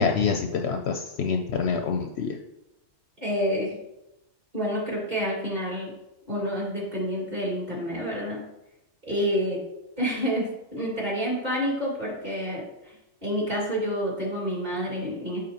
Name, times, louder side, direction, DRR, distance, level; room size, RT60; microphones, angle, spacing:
voice 1, 0.0-2.4, left 5 dB, 65° left, 4 dB, 0.7 m, -26 dB
voice 2, 3.2-3.7 4.5-5.9 6.3-8.4 9.1-9.6 10.0-10.4 10.7-12.6 13.2-15.4, equal, 35° right, -4 dB, 2.3 m, -28 dB
9.9 x 3.9 x 2.9 m, 0.89 s
omnidirectional pair, 1.3 m